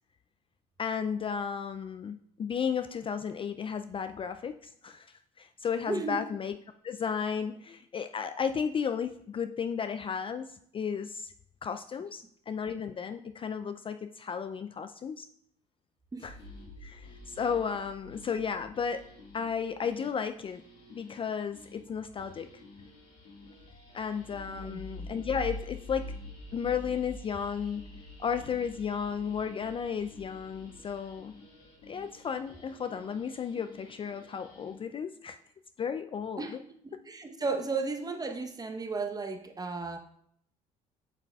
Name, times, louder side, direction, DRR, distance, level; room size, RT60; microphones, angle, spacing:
voice 1, 0.8-6.6 6.8-10.5 10.7-11.3 11.6-15.3 16.2-16.3 16.8-19.0 19.3-20.6 20.9-22.5 23.9-26.1 26.5-27.8 28.2-31.3 31.9-35.4 35.8-36.5, left 7 dB, 30° left, 9 dB, 0.3 m, -34 dB
voice 2, 5.9-6.2 16.1-16.3 24.5-24.8 36.4-36.6 36.8-40.0, right 4 dB, 20° right, 6 dB, 0.9 m, -34 dB
sound 1, 16.3-34.7, left 1 dB, 70° left, 1.9 m, -47 dB
8.2 x 5.5 x 2.3 m, 0.68 s
hypercardioid pair, 65°, 17 cm